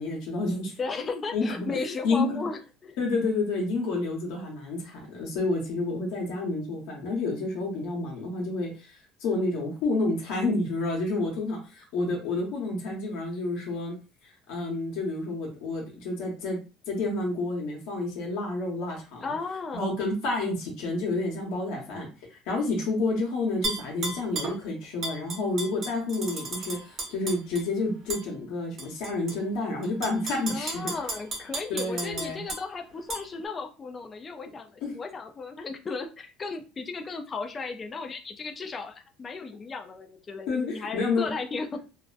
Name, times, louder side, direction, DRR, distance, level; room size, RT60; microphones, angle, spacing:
voice 1, 0.0-0.8 1.1-2.5 3.0-8.9 9.2-13.9 14.2-16.6 16.9-19.3 19.7-30.8 31.7-32.4 34.8-34.9 40.5-41.3, left 2 dB, 70° left, -1 dB, 0.9 m, -29 dB
voice 2, 0.8-3.0 19.2-20.0 30.5-41.8, left 4 dB, 20° left, 5 dB, 0.4 m, -35 dB
Tap / Glass, 23.6-24.6 25.0-27.6 28.1-28.2 28.8-29.3 29.8-32.6 33.1-33.2, right 2 dB, 40° right, 1.0 m, -33 dB
2.5 x 2.0 x 2.4 m, 0.32 s
cardioid pair, 150°, 0 cm